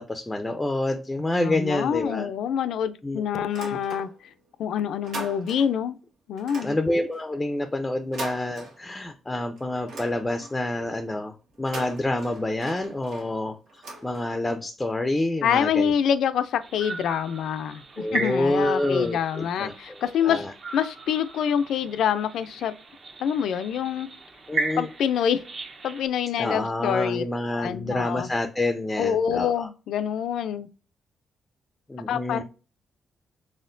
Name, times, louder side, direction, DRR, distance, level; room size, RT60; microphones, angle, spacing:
voice 1, 0.0-2.3 3.0-3.2 3.6-3.8 6.6-15.9 18.0-20.5 24.5-24.9 26.4-29.7 31.9-32.4, left 1 dB, 10° left, 0.4 m, -28 dB
voice 2, 1.4-4.1 4.6-6.0 6.3-6.8 15.4-20.5 20.7-22.7 23.2-24.1 24.8-25.4 25.8-27.2 27.6-28.3 29.0-30.7 32.1-32.4, left 8 dB, 80° left, 0.4 m, -26 dB
sound 1, 3.4-4.4 4.7-5.9 6.4-9.2 9.6-10.7 11.5-14.6, right 2 dB, 80° right, 1.5 m, -41 dB
sound 2, 16.6-26.1, right 3 dB, 45° right, 0.7 m, -36 dB
4.2 x 3.6 x 2.5 m
cardioid pair, 130°, 0 cm